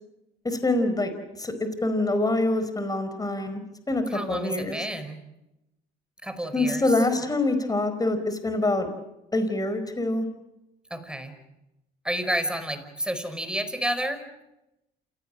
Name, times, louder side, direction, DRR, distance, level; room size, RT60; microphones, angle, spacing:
voice 1, 0.4-1.1 1.4-4.8 6.5-8.9 9.3-10.3, left 2 dB, 20° left, 9 dB, 4.7 m, -25 dB
voice 2, 4.1-5.2 6.2-6.8 10.9-11.3 12.0-14.2, right 1 dB, 5° right, 9 dB, 4.9 m, -30 dB
27.5 x 17.5 x 8.9 m, 0.91 s
supercardioid pair, 75°, 20 cm